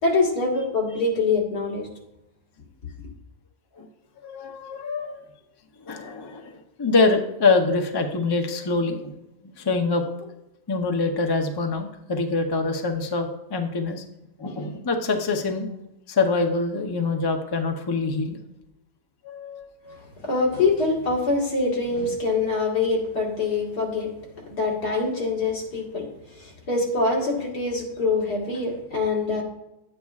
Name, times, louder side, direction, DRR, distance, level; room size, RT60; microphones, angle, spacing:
voice 1, 0.0-1.9 19.9-24.1 24.5-26.1 26.4-29.4, left 3 dB, 80° left, -1 dB, 2.2 m, -24 dB
voice 2, 4.2-5.2 5.9-9.1 9.6-10.0 10.7-14.0 14.4-15.7 16.1-18.4 19.2-19.7, left 3 dB, 30° left, 4 dB, 0.4 m, -25 dB
10.5 x 8.8 x 2.4 m, 0.90 s
omnidirectional pair, 1.6 m